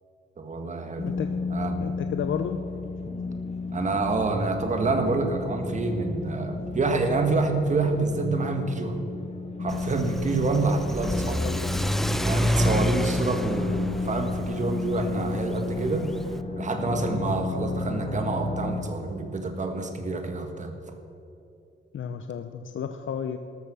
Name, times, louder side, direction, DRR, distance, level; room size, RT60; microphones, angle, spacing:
voice 1, 0.4-1.1 1.5-1.8 3.7-9.0 9.6-11.4 12.2-16.1 16.6-20.7, right 3 dB, 35° right, 5 dB, 1.6 m, -27 dB
sound 1, 1.0-18.8, left 3 dB, 30° left, 1.1 m, -33 dB
voice 2, 1.8-2.6 11.4-11.7 21.9-23.4, left 8 dB, 75° left, 8 dB, 0.7 m, -32 dB
Car / Accelerating revving vroom, 9.7-16.4, equal, ahead, 0.4 m, -29 dB
13.5 x 12.5 x 6.2 m, 2.8 s
wide cardioid pair, 165°, 20 cm